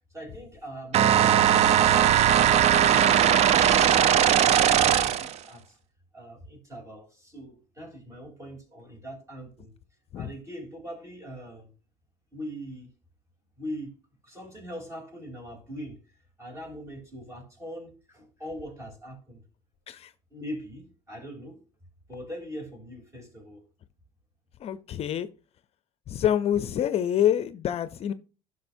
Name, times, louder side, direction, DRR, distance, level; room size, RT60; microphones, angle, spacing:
voice 1, 0.0-5.8 6.1-9.7 10.2-11.7 12.3-12.9 13.6-14.0 14.2-16.0 16.4-19.4 20.3-21.6 22.1-23.6, equal, 20° right, 3.3 m, -42 dB
sound 1, 0.9-5.4, right 10 dB, 50° right, 0.5 m, -19 dB
voice 2, 24.6-25.3 26.1-28.1, left 10 dB, 45° left, 0.5 m, -26 dB
11.5 x 6.1 x 2.7 m
supercardioid pair, 100°, 14 cm